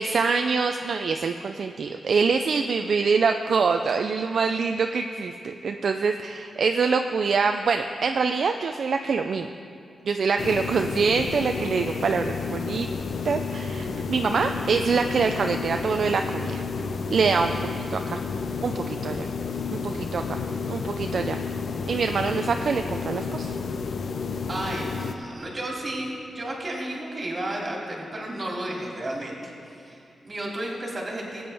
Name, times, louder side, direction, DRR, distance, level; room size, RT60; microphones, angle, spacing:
voice 1, 0.0-9.5 10.0-12.9 13.2-16.6 17.1-17.5 17.9-18.2 18.6-19.3 19.7-20.4 20.7-21.4 21.9-23.6, right 5 dB, 55° right, 6 dB, 0.4 m, -25 dB
sound 1, 10.4-25.2, left 5 dB, 55° left, 0.5 m, -31 dB
voice 2, 24.5-31.4, right 1 dB, 30° right, -3 dB, 2.5 m, -33 dB
19.5 x 8.6 x 3.4 m, 2.6 s
wide cardioid pair, 145°, 0 cm